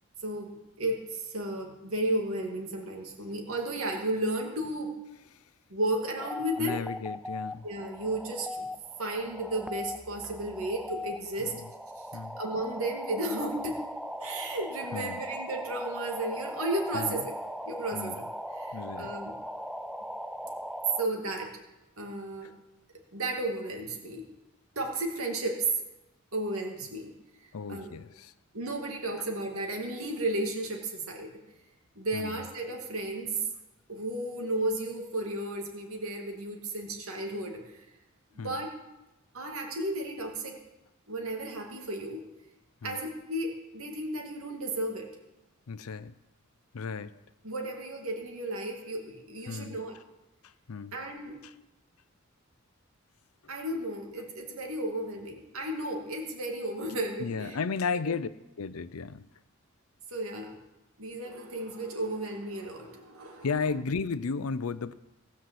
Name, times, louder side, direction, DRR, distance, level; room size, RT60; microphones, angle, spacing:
voice 1, 0.2-4.9 5.7-6.8 7.6-8.7 9.0-11.6 12.0-12.1 12.4-13.8 14.2-17.4 17.6-18.3 18.6-19.4 21.0-21.5 22.0-22.5 23.1-24.2 24.8-25.7 26.3-27.1 27.7-27.9 28.5-31.4 32.0-33.4 33.9-37.8 38.4-38.7 39.3-40.6 41.1-42.2 42.8-45.1 47.4-50.0 50.9-51.4 53.5-57.6 60.1-60.6 61.0-63.5, right 1 dB, 75° right, 1 dB, 2.5 m, -33 dB
sound 1, 6.2-21.1, equal, ahead, 0.4 m, -39 dB
voice 2, 6.6-7.7 11.4-11.7 12.1-12.4 14.9-15.2 16.9-17.2 17.9-18.2 18.7-19.1 22.4-22.5 27.5-28.3 32.1-32.4 38.4-38.6 42.8-43.0 45.7-46.1 46.7-47.2 49.5-49.8 50.4-51.0 51.4-51.5 57.2-58.3 58.6-59.3 63.4-64.9, left 5 dB, 90° left, 15 dB, 0.6 m, -34 dB
17.0 x 5.8 x 7.7 m, 0.98 s
head